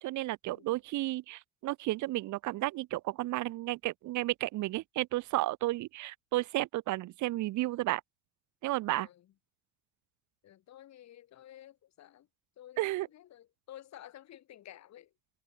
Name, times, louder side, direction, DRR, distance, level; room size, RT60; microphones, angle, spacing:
voice 1, 0.0-8.0 8.6-9.1 12.8-13.1, right 17 dB, 55° right, 0.9 m, -32 dB
voice 2, 8.9-9.2 10.4-12.3 12.6-15.1, left 12 dB, 50° left, 6.3 m, -52 dB
cardioid pair, 160°, 36 cm